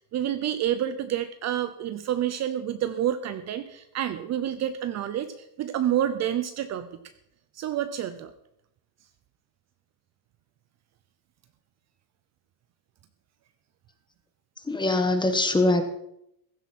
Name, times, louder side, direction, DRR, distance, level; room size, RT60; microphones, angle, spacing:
voice 1, 0.1-6.9 7.5-8.3, right 10 dB, 35° right, 11 dB, 0.8 m, -28 dB
voice 2, 14.6-15.8, left 2 dB, 10° left, 7 dB, 1.4 m, -23 dB
15.5 x 12.0 x 4.3 m, 0.76 s
cardioid pair, 145°, 45 cm